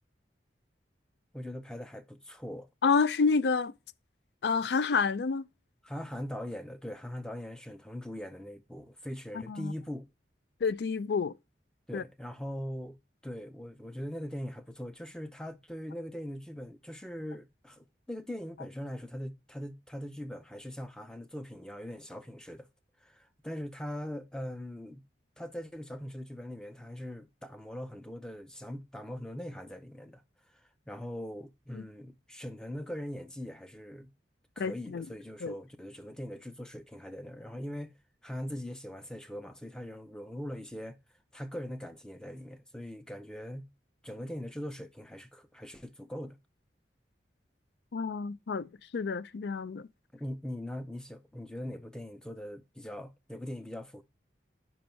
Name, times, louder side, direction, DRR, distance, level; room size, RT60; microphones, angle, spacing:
voice 1, 1.3-2.7 5.8-10.1 11.9-13.0 13.2-22.7 23.0-25.0 25.4-30.2 30.9-34.1 34.6-37.9 38.2-41.0 41.3-43.7 44.0-46.4 50.1-54.0, equal, 5° left, 0.5 m, -41 dB
voice 2, 2.8-3.7 4.4-5.5 9.5-9.7 10.6-11.3 11.9-12.0 31.7-31.8 34.6-35.1 35.4-35.5 47.9-49.9, left 5 dB, 65° left, 0.4 m, -29 dB
5.2 x 4.5 x 5.3 m
head